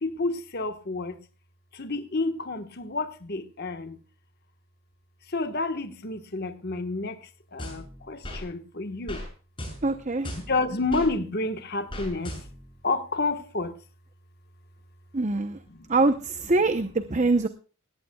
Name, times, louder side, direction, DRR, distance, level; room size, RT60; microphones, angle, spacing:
voice 1, 0.0-1.1 1.8-4.0 5.3-7.1 7.5-9.2 10.5-12.3 12.8-13.7, left 3 dB, 50° left, 1.3 m, -29 dB
sound 1, 7.6-8.4 9.1-9.3 9.6-11.1 11.9-12.7, left 1 dB, 25° left, 6.7 m, -37 dB
voice 2, 9.8-10.3 15.1-15.6 15.9-17.5, right 3 dB, 35° right, 0.8 m, -24 dB
18.5 x 17.0 x 2.3 m
head